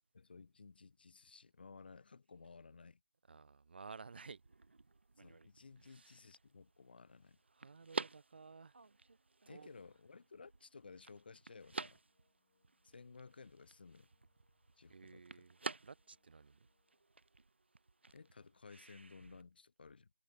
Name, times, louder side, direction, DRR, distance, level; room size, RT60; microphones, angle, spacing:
voice 1, 0.1-3.0 5.2-7.4 9.5-12.0 12.8-14.1 14.8-15.4 18.1-20.1, left 4 dB, 60° left, 0.7 m, -57 dB
voice 2, 3.3-4.4 5.8-6.2 7.5-8.8 9.5-9.7 14.9-15.6 15.8-16.7, right 4 dB, 65° right, 0.3 m, -54 dB
sound 1, 3.9-19.4, right 3 dB, 85° right, 0.7 m, -51 dB
sound 2, 11.8-17.1, left 7 dB, 40° left, 3.1 m, -85 dB
figure-of-eight pair, 160°, 6 cm